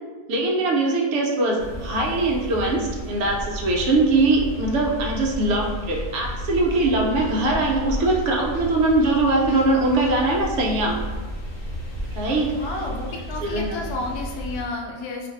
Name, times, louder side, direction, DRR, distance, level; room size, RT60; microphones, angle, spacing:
voice 1, 0.3-11.0 12.1-12.5 13.4-13.8, right 2 dB, 75° right, 0 dB, 0.6 m, -21 dB
sound 1, 1.6-14.6, right 1 dB, 50° left, 0.5 m, -33 dB
voice 2, 12.5-15.3, left 3 dB, 75° left, 0 dB, 1.0 m, -31 dB
2.5 x 2.5 x 4.0 m, 1.5 s
omnidirectional pair, 1.7 m